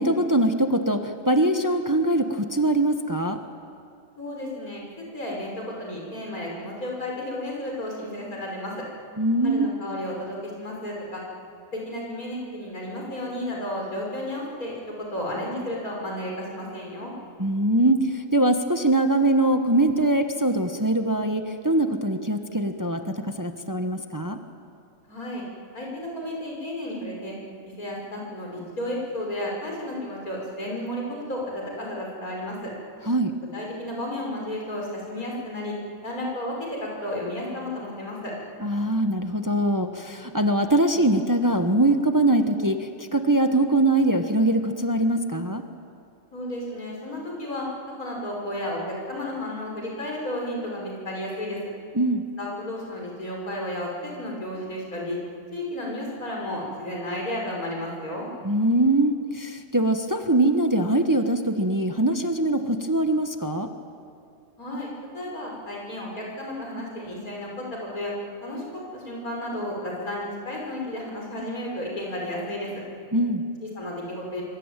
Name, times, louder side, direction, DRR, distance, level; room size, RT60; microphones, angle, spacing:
voice 1, 0.0-3.4 9.2-9.7 17.4-24.4 33.1-33.3 38.6-45.6 51.9-52.2 58.4-63.7 73.1-73.4, right 1 dB, 15° right, 6 dB, 1.1 m, -22 dB
voice 2, 4.2-8.7 9.4-11.2 11.7-17.1 25.1-25.4 25.7-27.3 27.6-32.7 33.5-35.7 36.0-38.3 46.3-47.7 48.0-51.6 52.4-55.2 55.5-58.3 64.6-67.7 67.9-68.1 68.4-68.6 68.9-72.7 73.6-74.4, left 1 dB, 85° left, -2 dB, 6.6 m, -33 dB
25.5 x 24.5 x 9.1 m, 2.4 s
omnidirectional pair, 1.5 m